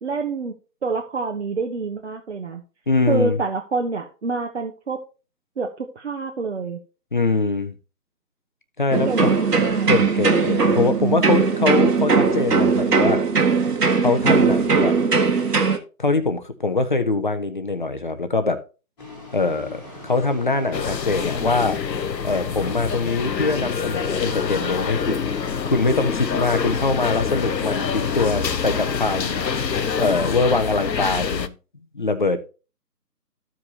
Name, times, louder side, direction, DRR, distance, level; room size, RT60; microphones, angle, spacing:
voice 1, 0.0-0.5 0.8-2.6 3.1-5.0 5.6-6.8 9.1-9.9, right 4 dB, 45° right, 0.8 m, -27 dB
voice 2, 2.9-3.4 7.1-7.7 8.8-9.3 9.9-13.2 14.0-14.9 16.0-18.6 19.3-21.8 22.2-25.3 25.7-31.5 31.9-32.5, left 3 dB, 30° left, 0.6 m, -23 dB
sound 1, 8.9-15.8, right 4 dB, 70° right, 1.5 m, -19 dB
sound 2, 19.0-30.4, left 2 dB, 10° left, 1.4 m, -39 dB
sound 3, 20.7-31.5, left 6 dB, 90° left, 0.8 m, -26 dB
14.0 x 4.9 x 2.8 m
figure-of-eight pair, 150°, 49 cm